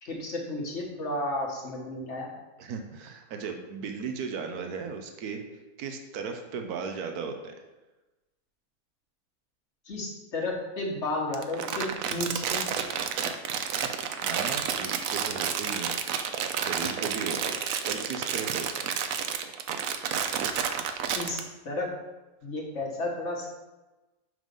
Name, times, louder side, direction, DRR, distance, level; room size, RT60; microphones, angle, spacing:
voice 1, 0.0-2.3 9.9-12.7 21.1-21.9 22.4-23.5, left 2 dB, 50° left, -1 dB, 1.8 m, -33 dB
voice 2, 2.6-5.4 5.8-7.5 14.2-16.0 16.6-17.6 17.9-18.9, right 5 dB, 85° right, 5 dB, 1.3 m, -36 dB
Crumpling crinkling, 11.3-21.4, right 7 dB, 70° right, 1.0 m, -30 dB
6.3 x 5.4 x 5.3 m, 1.1 s
omnidirectional pair, 1.6 m